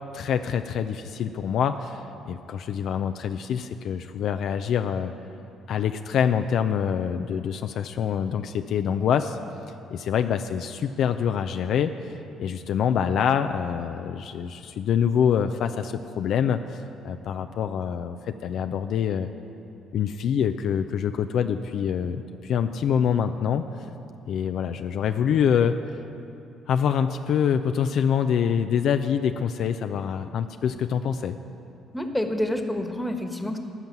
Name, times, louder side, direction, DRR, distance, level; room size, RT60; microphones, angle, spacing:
voice 1, 0.1-5.1 5.7-9.4 9.9-12.1 12.4-19.3 19.9-23.6 24.3-25.8 26.7-31.4, left 8 dB, 65° left, 8 dB, 0.4 m, -25 dB
voice 2, 31.9-33.6, left 1 dB, 10° left, 6 dB, 1.3 m, -28 dB
14.0 x 5.9 x 9.2 m, 2.8 s
hypercardioid pair, 60°, 0 cm